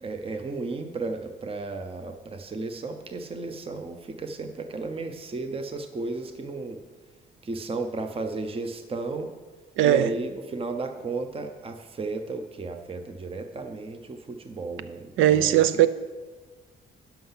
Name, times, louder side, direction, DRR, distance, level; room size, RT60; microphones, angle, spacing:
voice 1, 0.0-6.8 7.4-9.3 9.8-15.9, right 3 dB, 30° right, 0.8 m, -34 dB
voice 2, 9.8-10.1 15.2-15.9, right 12 dB, 90° right, 0.6 m, -19 dB
11.5 x 5.7 x 5.7 m
cardioid pair, 90°, 20 cm